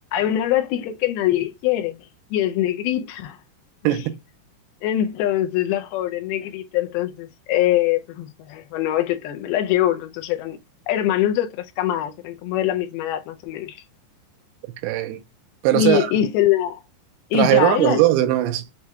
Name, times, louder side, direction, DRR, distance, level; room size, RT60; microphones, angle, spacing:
voice 1, 0.1-2.0 2.3-3.4 4.8-10.6 10.9-13.8 15.7-16.8 17.3-18.0, left 12 dB, 80° left, 2.5 m, -23 dB
voice 2, 14.8-15.2 15.6-16.1 17.3-18.6, right 14 dB, 90° right, 2.6 m, -19 dB
7.2 x 2.7 x 2.2 m
omnidirectional pair, 4.5 m